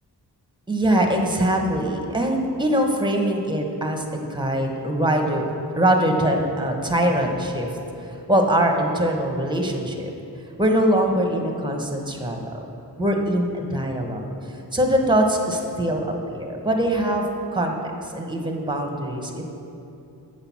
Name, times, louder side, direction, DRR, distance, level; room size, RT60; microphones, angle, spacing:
voice 1, 0.7-5.5 5.8-7.7 8.3-10.1 10.6-12.6 13.0-14.3 14.7-17.3 17.5-17.8 18.0-19.4, right 1 dB, 10° right, 2 dB, 0.9 m, -22 dB
7.7 x 5.8 x 5.9 m, 2.8 s
wide cardioid pair, 80°, 40 cm